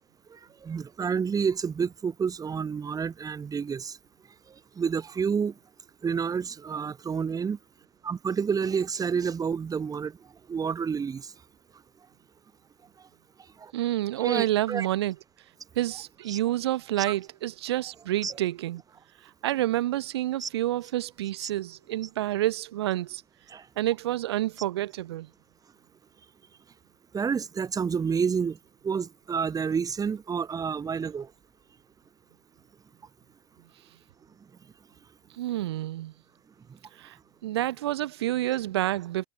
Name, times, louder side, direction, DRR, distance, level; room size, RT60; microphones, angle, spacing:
voice 1, 0.6-4.0 4.8-5.5 6.0-7.6 8.0-10.1 10.5-11.3 13.6-13.7 14.2-14.9 16.3-16.4 17.1-17.2 18.2-18.4 20.4-20.5 21.4-21.5 23.5-23.6 27.1-28.6 28.8-31.3, right 6 dB, 25° right, 3.2 m, -29 dB
voice 2, 13.7-15.1 15.8-18.8 19.4-23.2 23.8-25.3 35.4-36.1 37.0-37.1 37.4-39.2, right 14 dB, 85° right, 1.1 m, -28 dB
hypercardioid pair, 90°, 13 cm